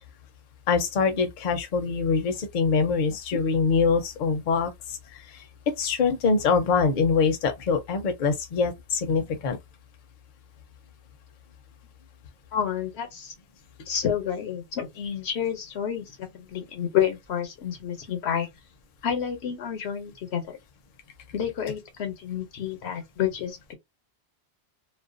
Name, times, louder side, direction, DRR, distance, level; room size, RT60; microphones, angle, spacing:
voice 1, 0.7-5.2 5.8-9.6, left 5 dB, 55° left, 0.7 m, -24 dB
voice 2, 12.5-13.3 13.9-18.5 19.0-20.6 21.3-23.7, left 9 dB, 85° left, 1.0 m, -29 dB
2.4 x 2.1 x 2.4 m
omnidirectional pair, 1.1 m